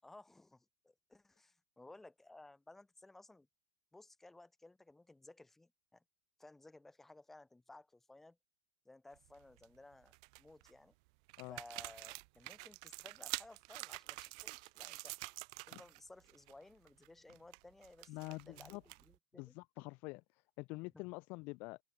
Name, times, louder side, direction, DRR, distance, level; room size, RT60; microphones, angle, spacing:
voice 1, 0.0-3.5 3.9-6.0 6.4-8.4 8.8-10.9 11.5-15.1 15.7-19.5, left 2 dB, 5° left, 6.5 m, -58 dB
sound 1, 9.2-9.6 10.1-10.7 11.3-16.0 16.2-16.5 16.9-19.2, right 30 dB, 55° right, 0.6 m, -47 dB
voice 2, 18.1-18.8 19.4-21.8, left 26 dB, 45° left, 0.4 m, -47 dB
supercardioid pair, 145°, 5 cm